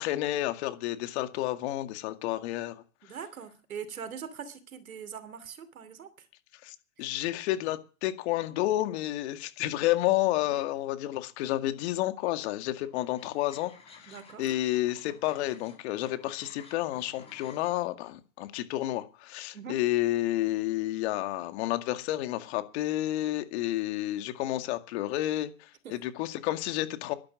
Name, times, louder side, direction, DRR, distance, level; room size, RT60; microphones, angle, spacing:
voice 1, 0.0-2.8 6.6-27.2, left 15 dB, 50° left, 2.1 m, -30 dB
voice 2, 3.0-6.3 14.1-14.4 19.5-19.8 25.8-25.9, right 7 dB, 85° right, 2.8 m, -42 dB
sound 1, 12.6-17.7, left 4 dB, 15° left, 6.0 m, -54 dB
12.0 x 11.5 x 7.3 m
hypercardioid pair, 125°, 41 cm